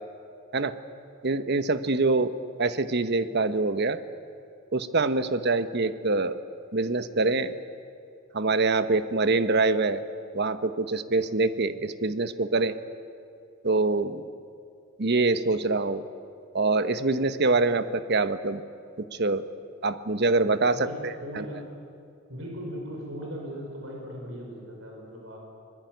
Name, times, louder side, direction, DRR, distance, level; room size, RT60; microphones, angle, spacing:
voice 1, 1.2-2.3 2.6-4.0 4.7-6.4 6.7-7.6 8.3-10.0 10.3-12.7 13.6-14.2 15.0-16.0 16.5-18.6 19.0-19.4 19.8-21.4, right 3 dB, 55° right, 12 dB, 1.1 m, -25 dB
voice 2, 20.7-21.6 22.3-25.4, equal, 75° right, 0 dB, 5.2 m, -38 dB
26.0 x 20.5 x 9.3 m, 2.4 s
head